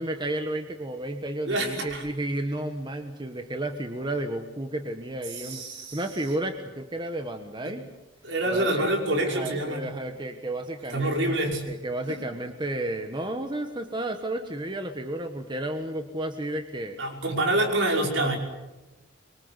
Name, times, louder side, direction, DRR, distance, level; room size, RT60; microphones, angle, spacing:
voice 1, 0.0-5.6 5.9-7.8 8.5-8.8 9.3-17.0 18.2-18.3, right 1 dB, 25° right, 6 dB, 1.4 m, -32 dB
voice 2, 1.5-2.0 5.3-6.0 7.6-7.7 8.2-9.9 10.9-11.7 12.1-12.2 17.0-18.4, right 1 dB, 70° right, 1 dB, 5.8 m, -26 dB
25.0 x 24.0 x 8.2 m, 1.0 s
head